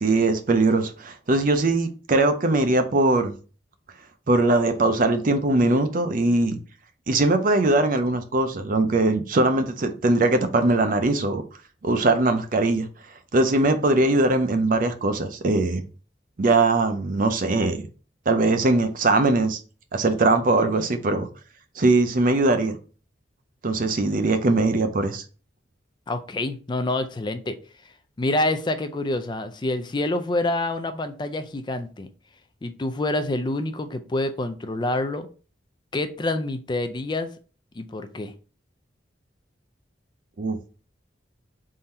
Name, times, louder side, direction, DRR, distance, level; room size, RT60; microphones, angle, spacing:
voice 1, 0.0-3.3 4.3-6.6 7.1-11.4 11.8-12.9 13.3-15.8 16.4-17.8 18.3-19.6 19.9-21.3 21.8-22.8 23.6-25.2 40.4-40.6, right 2 dB, 45° right, 8 dB, 0.5 m, -21 dB
voice 2, 26.1-27.6 28.2-32.1 32.6-35.3 35.9-37.3 37.8-38.3, left 2 dB, 25° left, 9 dB, 0.4 m, -27 dB
3.7 x 2.7 x 4.2 m, 0.37 s
head